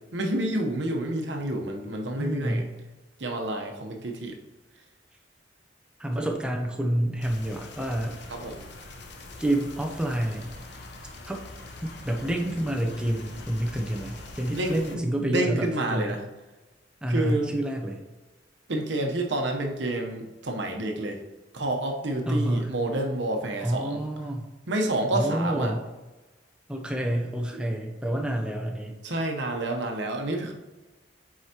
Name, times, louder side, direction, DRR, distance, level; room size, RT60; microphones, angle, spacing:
voice 1, 0.1-2.7 3.2-4.4 6.2-6.3 8.3-8.7 14.5-16.2 17.1-17.6 18.7-21.2 21.5-24.0 24.7-25.7 27.5-27.6 29.0-30.5, right 1 dB, 70° right, 2 dB, 0.9 m, -29 dB
voice 2, 2.1-2.7 6.0-8.2 9.4-10.5 11.3-11.4 11.8-16.2 17.0-18.0 22.3-22.7 23.6-24.5 25.1-25.8 26.7-29.0, right 1 dB, 5° right, 0 dB, 0.6 m, -28 dB
sound 1, 7.2-14.9, left 2 dB, 65° left, 0.9 m, -43 dB
7.7 x 4.8 x 2.9 m, 1.2 s
head